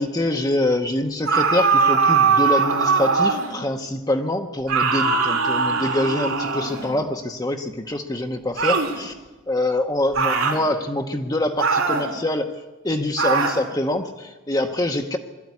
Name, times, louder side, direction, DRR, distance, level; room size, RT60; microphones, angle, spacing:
voice 1, 0.0-9.1 9.5-12.5 12.8-15.2, left 1 dB, 15° left, 4 dB, 0.9 m, -25 dB
sound 1, 1.2-3.6 4.7-6.9 8.6-9.0 10.1-10.6 11.6-12.1 13.2-13.6, right 5 dB, 85° right, 3.2 m, -20 dB
21.0 x 13.5 x 9.6 m, 1.2 s
head